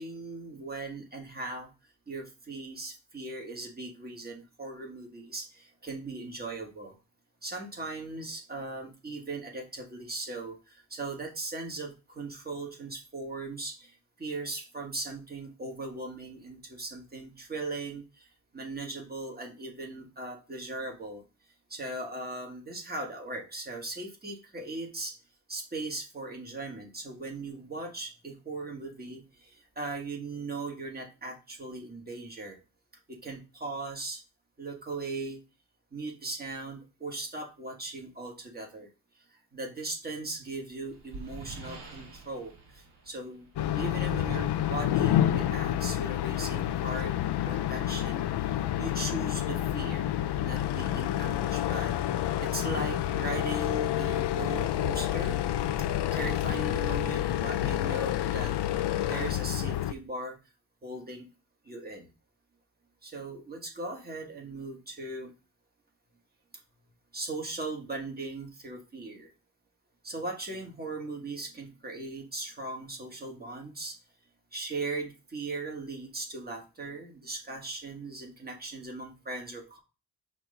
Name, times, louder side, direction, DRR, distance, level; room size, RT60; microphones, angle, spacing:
voice 1, 0.0-1.7 2.1-7.0 7.4-21.2 21.7-25.1 25.5-32.6 33.1-34.2 34.6-35.4 35.9-38.9 39.3-43.5 43.8-47.1 47.4-50.1 50.4-52.0 52.4-55.4 56.1-58.5 59.1-60.4 60.8-61.3 61.6-62.1 63.0-65.3 67.1-69.3 70.0-74.0 74.5-79.8, right 2 dB, 20° right, 1 dB, 1.5 m, -38 dB
sound 1, 40.3-44.0, right 2 dB, 55° right, 1.6 m, -47 dB
sound 2, 43.6-59.9, left 12 dB, 65° left, 0.5 m, -29 dB
6.3 x 3.0 x 5.0 m, 0.31 s
wide cardioid pair, 160°, 45 cm